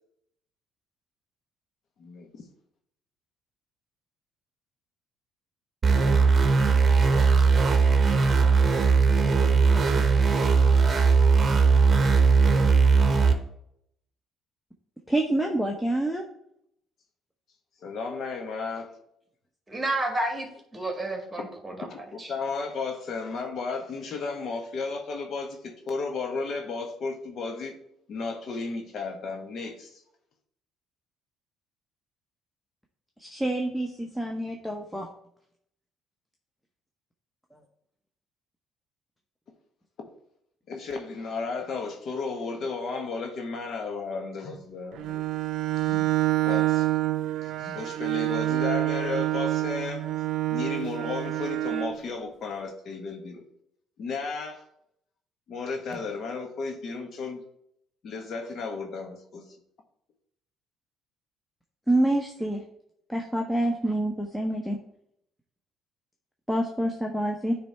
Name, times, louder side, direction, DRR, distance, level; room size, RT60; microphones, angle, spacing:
voice 1, 2.0-2.4 17.8-18.9 21.9-27.8 28.1-30.0 40.7-45.2 45.8-46.1 46.5-46.9 47.4-50.0 50.5-53.4 54.0-54.6 55.5-57.4 58.0-59.5, left 4 dB, 55° left, 4 dB, 1.2 m, -34 dB
sound 1, 5.8-13.3, right 4 dB, 35° right, 1.0 m, -19 dB
voice 2, 15.1-16.2 33.2-35.1 61.9-62.6 63.1-64.8 66.5-67.6, right 1 dB, ahead, 1 dB, 0.9 m, -27 dB
voice 3, 19.7-22.3, right 1 dB, 15° right, 2 dB, 2.0 m, -31 dB
Bowed string instrument, 44.9-52.0, right 15 dB, 70° right, 0.6 m, -27 dB
9.2 x 3.3 x 4.3 m, 0.73 s
supercardioid pair, 80°, 0 cm